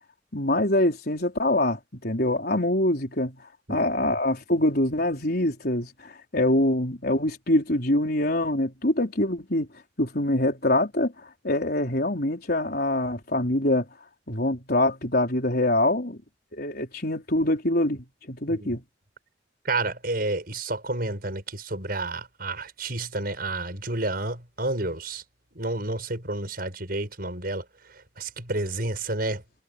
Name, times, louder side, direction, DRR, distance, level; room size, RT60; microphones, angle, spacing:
voice 1, 0.3-3.4 3.7-9.7 10.0-13.9 14.3-16.2 16.5-18.8, left 1 dB, 55° left, 4.8 m, -24 dB
voice 2, 3.7-4.1 18.5-18.7 19.6-25.2 25.5-27.6 28.2-29.4, right 2 dB, 55° right, 6.6 m, -30 dB
head